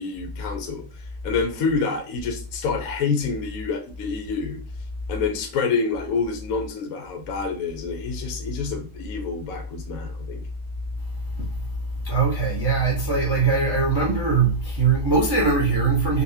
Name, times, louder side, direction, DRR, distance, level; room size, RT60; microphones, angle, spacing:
voice 1, 0.0-4.6 5.1-10.4, left 5 dB, 60° left, 1.0 m, -27 dB
voice 2, 11.4-11.7 12.0-16.2, right 4 dB, 25° right, 0.5 m, -21 dB
4.0 x 2.3 x 2.7 m
omnidirectional pair, 1.9 m